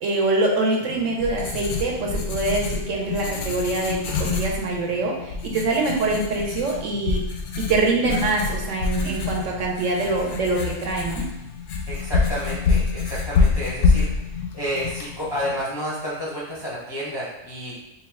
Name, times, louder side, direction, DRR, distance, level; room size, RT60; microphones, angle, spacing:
voice 1, 0.0-7.2 7.6-11.2, right 3 dB, 65° right, -1 dB, 0.9 m, -24 dB
Writing, 0.8-15.6, left 5 dB, 85° left, 1.1 m, -26 dB
voice 2, 11.9-14.1 14.5-17.8, equal, 25° left, -7 dB, 0.5 m, -30 dB
4.1 x 2.2 x 3.4 m, 0.91 s
omnidirectional pair, 1.5 m